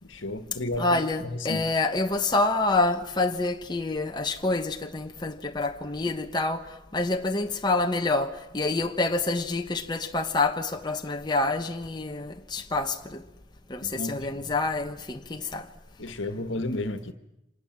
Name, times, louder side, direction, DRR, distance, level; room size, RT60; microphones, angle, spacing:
voice 1, 0.0-1.6 13.8-14.5 16.0-17.1, left 2 dB, 60° left, 1.8 m, -33 dB
voice 2, 0.8-13.2 13.7-15.7, left 2 dB, 20° left, 1.1 m, -27 dB
29.0 x 26.5 x 7.6 m
head